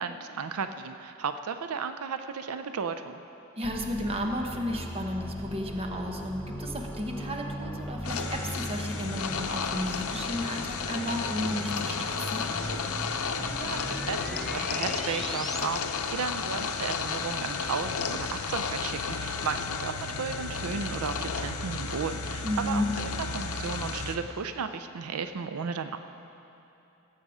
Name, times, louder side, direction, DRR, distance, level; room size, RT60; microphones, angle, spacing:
voice 1, 0.0-3.2 13.6-26.0, right 5 dB, 90° right, 9 dB, 0.5 m, -34 dB
sound 1, 3.6-15.6, equal, ahead, 0.5 m, -38 dB
voice 2, 3.6-12.5 22.4-22.9, equal, 25° right, 2 dB, 1.0 m, -33 dB
sound 2, 8.0-24.2, left 5 dB, 85° left, 0.6 m, -33 dB
16.5 x 7.4 x 4.9 m, 2.9 s
head